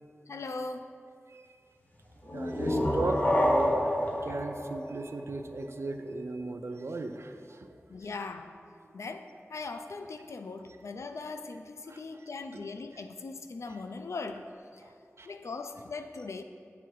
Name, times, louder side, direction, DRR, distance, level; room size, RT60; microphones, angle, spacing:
voice 1, 0.3-1.0 7.9-8.6 8.9-14.5 15.3-16.4, left 3 dB, 90° left, 7 dB, 0.3 m, -40 dB
sound 1, 2.3-5.8, left 1 dB, 35° left, 0.8 m, -28 dB
voice 2, 2.3-3.9 4.2-7.8 11.9-12.0 12.5-12.6 14.8-15.3, right 2 dB, 65° right, 6 dB, 0.4 m, -36 dB
8.2 x 3.7 x 4.6 m, 2.3 s
wide cardioid pair, 60°, 5 cm